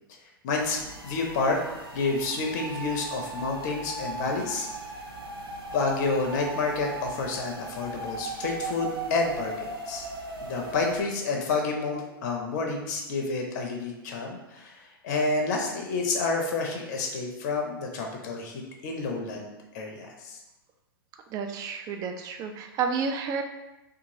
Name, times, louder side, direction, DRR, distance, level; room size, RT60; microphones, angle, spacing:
voice 1, 0.4-1.6 1.9-4.7 5.7-10.0 10.4-14.7 15.0-20.4, left 3 dB, 50° left, 1 dB, 0.6 m, -29 dB
sound 1, 0.5-11.0, right 3 dB, 90° right, 0.6 m, -38 dB
voice 2, 21.3-23.4, right 6 dB, 30° right, 5 dB, 0.3 m, -31 dB
2.8 x 2.4 x 2.7 m, 1.0 s
figure-of-eight pair, 105°, 12 cm